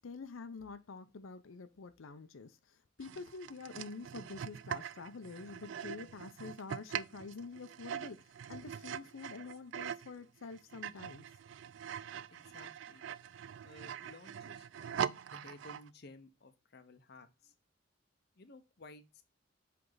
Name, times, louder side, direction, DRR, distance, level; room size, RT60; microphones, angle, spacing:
voice 1, 0.0-11.3, left 4 dB, 85° left, 0.6 m, -47 dB
sound 1, 3.0-10.1 10.5-15.9, right 8 dB, 65° right, 0.3 m, -43 dB
voice 2, 12.3-13.0 13.6-17.5 18.4-19.2, left 2 dB, 55° left, 0.7 m, -56 dB
7.7 x 3.5 x 3.9 m
head